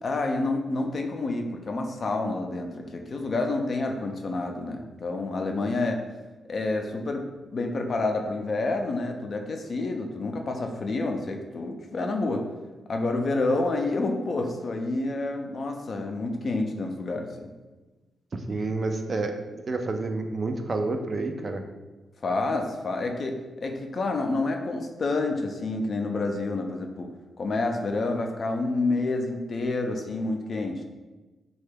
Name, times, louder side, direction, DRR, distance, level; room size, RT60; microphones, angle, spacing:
voice 1, 0.0-6.0 6.5-12.4 12.9-17.5 22.2-27.1 27.4-30.9, left 2 dB, 50° left, 3 dB, 0.4 m, -28 dB
voice 2, 18.5-19.3 19.7-21.6, right 3 dB, 45° right, 5 dB, 0.3 m, -29 dB
3.3 x 2.3 x 3.3 m, 1.2 s
cardioid pair, 85°, 0 cm